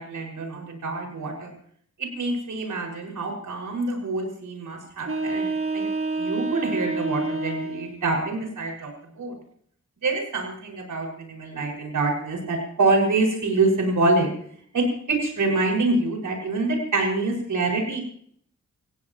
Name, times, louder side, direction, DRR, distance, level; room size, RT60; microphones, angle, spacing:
voice 1, 0.0-1.5 2.0-5.9 6.2-9.4 10.0-14.3 14.7-18.0, right 3 dB, 85° right, 1 dB, 5.7 m, -26 dB
sound 1, 5.0-8.0, right 3 dB, 45° right, 1.6 m, -28 dB
26.5 x 16.0 x 3.0 m, 0.62 s
wide cardioid pair, 160°, 30 cm